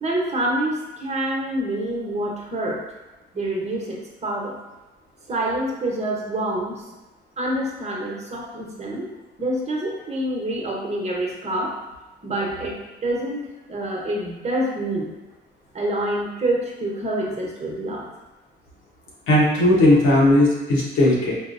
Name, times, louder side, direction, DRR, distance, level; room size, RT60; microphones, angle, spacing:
voice 1, 0.0-2.8 3.3-4.6 5.3-6.8 7.4-9.1 9.4-11.8 12.2-13.4 13.7-15.1 15.7-18.1, right 1 dB, 35° right, -1 dB, 0.8 m, -26 dB
voice 2, 19.3-21.3, left 1 dB, 90° left, -5 dB, 1.0 m, -17 dB
4.1 x 2.0 x 2.5 m, 1.1 s
cardioid pair, 90°, 20 cm